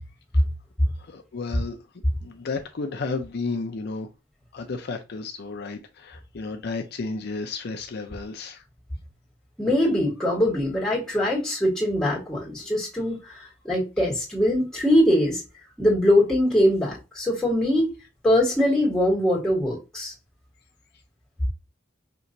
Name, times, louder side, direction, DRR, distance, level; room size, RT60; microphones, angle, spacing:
voice 1, 1.1-1.8 2.2-4.1 4.5-8.6, left 3 dB, 55° left, 0.5 m, -32 dB
voice 2, 9.6-15.4 15.8-17.9 18.2-20.1, left 1 dB, 5° left, 1.8 m, -22 dB
5.5 x 2.9 x 2.6 m
head